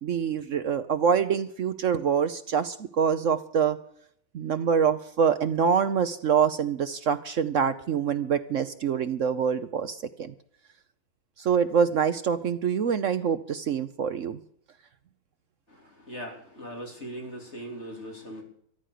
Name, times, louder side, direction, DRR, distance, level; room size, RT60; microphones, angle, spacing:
voice 1, 0.0-3.8 4.3-10.3 11.4-14.4, right 7 dB, 70° right, 10 dB, 0.7 m, -25 dB
voice 2, 16.1-18.4, equal, 30° left, 1 dB, 3.7 m, -39 dB
14.0 x 11.5 x 6.7 m, 0.66 s
omnidirectional pair, 2.2 m